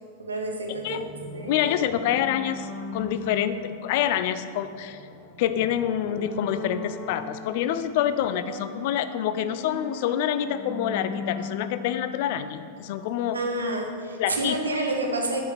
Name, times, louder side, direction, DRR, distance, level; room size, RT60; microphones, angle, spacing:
voice 1, 0.2-1.8 2.9-3.1 13.3-15.4, right 2 dB, 75° right, 3 dB, 0.9 m, -29 dB
sound 1, 0.7-13.2, left 3 dB, 20° left, 0.9 m, -40 dB
voice 2, 1.5-5.0 5.4-13.4 14.2-14.6, left 10 dB, 50° left, 12 dB, 0.3 m, -27 dB
7.4 x 4.9 x 4.3 m, 2.3 s
figure-of-eight pair, 90°, 0 cm